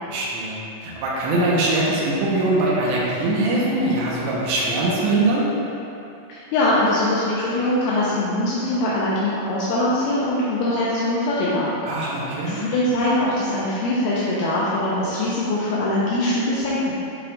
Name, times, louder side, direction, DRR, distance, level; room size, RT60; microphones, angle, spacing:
voice 1, 0.1-5.5 11.9-12.6, right 2 dB, 80° right, -5 dB, 3.1 m, -22 dB
voice 2, 6.3-11.7 12.6-17.0, left 1 dB, 80° left, -8 dB, 2.4 m, -22 dB
10.5 x 4.7 x 2.5 m, 2.9 s
omnidirectional pair, 4.9 m